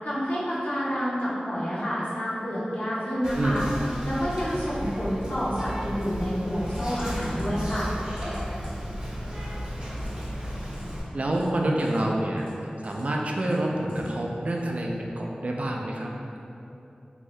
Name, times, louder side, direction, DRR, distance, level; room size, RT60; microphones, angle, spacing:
voice 1, 0.0-3.6 4.0-7.9, equal, 60° left, -8 dB, 0.8 m, -29 dB
Whispering, 3.2-11.0, equal, 30° right, 0.7 m, -34 dB
sound 1, 6.7-7.0 7.2-7.4 7.7-8.4 8.6-8.7 9.9-10.2 10.6-10.9 11.3-12.0 12.3-13.0 13.4-14.1 14.5-14.6, left 1 dB, 85° left, 1.1 m, -51 dB
voice 2, 11.1-12.5 12.8-16.1, right 1 dB, 50° right, -1 dB, 0.3 m, -27 dB
2.7 x 2.6 x 3.1 m, 2.7 s
wide cardioid pair, 65°, 3 cm